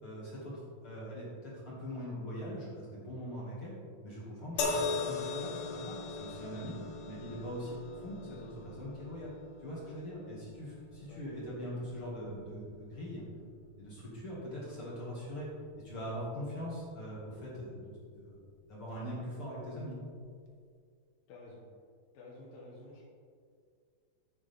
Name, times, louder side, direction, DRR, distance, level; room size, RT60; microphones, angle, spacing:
voice 1, 0.0-3.7 4.0-6.8 7.1-9.3 9.6-13.3 13.8-15.5 15.8-18.4 18.7-20.0, equal, 40° left, -6 dB, 2.3 m, -42 dB
sound 1, 4.6-17.9 18.9-19.0, left 4 dB, 90° left, 3.5 m, -42 dB
voice 2, 11.0-11.5 21.3-21.6 22.1-23.1, left 2 dB, 70° left, -4 dB, 2.8 m, -51 dB
10.5 x 10.0 x 3.5 m, 2.1 s
omnidirectional pair, 4.6 m